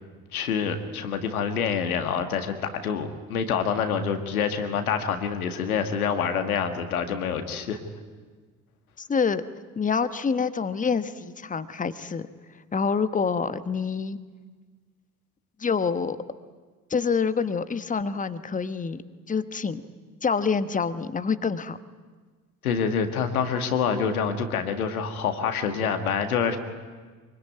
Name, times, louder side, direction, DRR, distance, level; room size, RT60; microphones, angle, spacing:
voice 1, 0.3-7.8 22.6-26.6, left 6 dB, 75° left, 7 dB, 2.0 m, -26 dB
voice 2, 9.0-9.4 9.8-12.2 12.7-14.2 15.6-16.2 16.9-19.0 19.3-19.8 20.2-21.8, left 5 dB, 20° left, 12 dB, 1.2 m, -26 dB
25.0 x 23.5 x 9.5 m, 1.5 s
figure-of-eight pair, 55°, 44 cm